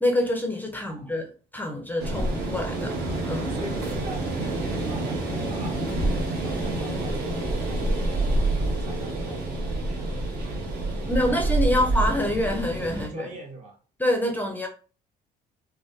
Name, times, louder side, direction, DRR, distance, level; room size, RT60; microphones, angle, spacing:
voice 1, 0.0-3.0 3.3-3.5 11.1-13.3 14.0-14.7, left 1 dB, 10° left, 0.4 m, -26 dB
voice 2, 0.8-1.1 3.5-10.6 11.0-11.9 12.9-13.8, right 2 dB, 45° right, 0.9 m, -43 dB
sound 1, 2.0-13.1, right 2 dB, 70° right, 1.1 m, -27 dB
3.3 x 2.2 x 2.5 m
cardioid pair, 110°, 17 cm